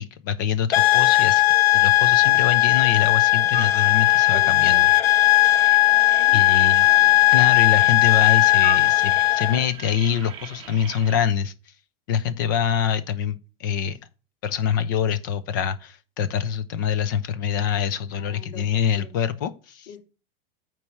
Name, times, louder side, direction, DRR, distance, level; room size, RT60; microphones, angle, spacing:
voice 1, 0.0-1.4 1.7-4.9 6.3-11.5 12.1-14.0 14.4-19.9, left 8 dB, 20° left, 0.4 m, -25 dB
sound 1, 0.7-9.6, left 17 dB, 90° left, 0.7 m, -17 dB
sound 2, 3.5-11.2, right 8 dB, 20° right, 1.2 m, -39 dB
voice 2, 5.9-7.5 18.1-18.7 18.9-19.1 19.9-20.0, left 6 dB, 45° left, 3.4 m, -46 dB
8.5 x 4.5 x 6.1 m
supercardioid pair, 180°, 29 cm